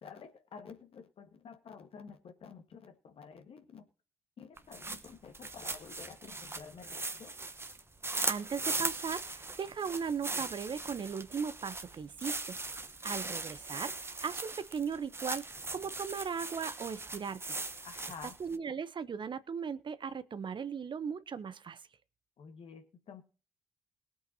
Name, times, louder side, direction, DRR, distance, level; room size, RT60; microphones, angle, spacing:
voice 1, 0.0-3.8 4.4-7.4 17.8-18.3 22.4-23.2, left 6 dB, 50° left, 7 dB, 1.7 m, -50 dB
sound 1, 4.6-18.6, right 3 dB, 20° right, 1.1 m, -39 dB
voice 2, 8.3-12.6 13.0-15.4 15.7-17.4 18.4-21.8, right 6 dB, 40° right, 14 dB, 0.8 m, -37 dB
21.5 x 8.4 x 2.8 m, 0.36 s
figure-of-eight pair, 40°, 12 cm